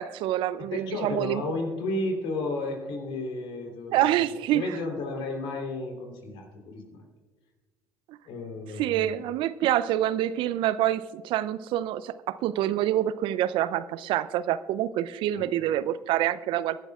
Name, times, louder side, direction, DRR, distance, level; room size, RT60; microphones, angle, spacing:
voice 1, 0.0-1.4 3.9-4.6 8.8-16.8, right 12 dB, 60° right, 16 dB, 0.5 m, -26 dB
voice 2, 0.7-7.0 8.2-9.2 15.3-15.5, left 2 dB, 65° left, 2 dB, 3.4 m, -33 dB
22.0 x 12.0 x 2.4 m, 1.3 s
hypercardioid pair, 65°, 10 cm